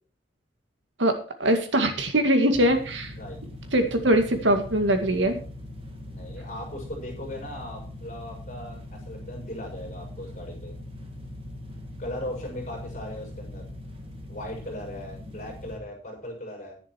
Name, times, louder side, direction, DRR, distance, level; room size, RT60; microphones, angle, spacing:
voice 1, 1.0-3.1 3.7-5.4, right 1 dB, 85° right, 6 dB, 2.1 m, -22 dB
sound 1, 2.5-15.8, left 1 dB, 30° right, 2.0 m, -41 dB
voice 2, 6.0-10.8 12.0-13.7 14.3-16.7, left 1 dB, 35° left, 0 dB, 6.5 m, -38 dB
10.5 x 10.5 x 4.5 m, 0.39 s
head